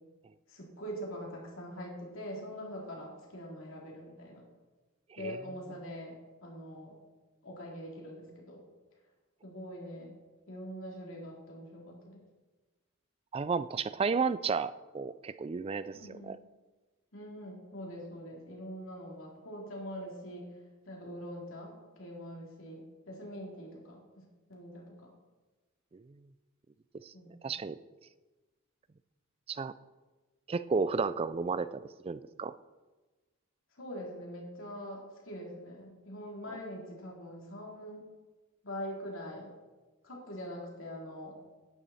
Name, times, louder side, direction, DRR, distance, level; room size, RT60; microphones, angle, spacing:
voice 1, 0.5-4.4 5.2-7.0 7.4-8.6 9.4-10.2 10.5-12.2 15.9-16.4 17.1-20.4 20.9-24.2 24.5-25.1 27.1-27.3 33.8-38.1 38.6-39.5 40.0-41.4, equal, 65° left, -2 dB, 3.0 m, -43 dB
voice 2, 13.3-16.4 25.9-26.0 27.0-27.1 27.4-27.8 29.5-29.7 30.5-32.5, right 5 dB, 25° right, 15 dB, 0.3 m, -33 dB
10.5 x 10.0 x 4.2 m, 1.2 s
head